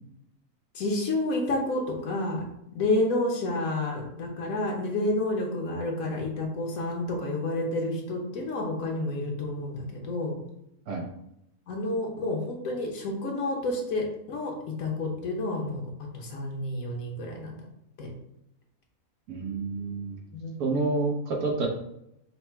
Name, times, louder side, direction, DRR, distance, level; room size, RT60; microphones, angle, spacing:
voice 1, 0.7-2.4 2.7-10.4 11.7-17.7 18.0-18.1 20.3-20.5, left 2 dB, 70° left, 1 dB, 1.3 m, -30 dB
voice 2, 19.3-20.2 20.6-21.7, right 3 dB, 85° right, 1 dB, 1.3 m, -28 dB
4.0 x 2.1 x 4.5 m, 0.80 s
omnidirectional pair, 1.5 m